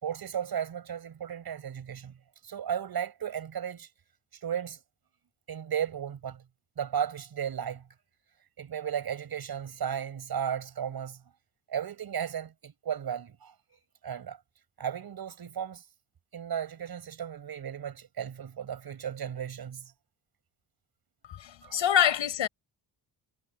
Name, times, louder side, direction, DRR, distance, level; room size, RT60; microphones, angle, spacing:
voice 1, 0.0-2.1 2.4-3.9 4.4-4.8 5.5-6.4 6.8-7.8 8.6-11.2 11.7-13.5 14.0-14.4 14.8-15.8 16.3-19.9 21.6-21.8, right 8 dB, 55° right, 5.5 m, -35 dB
voice 2, 21.3-22.5, left 10 dB, 85° left, 6.7 m, -26 dB
wide cardioid pair, 165°, 44 cm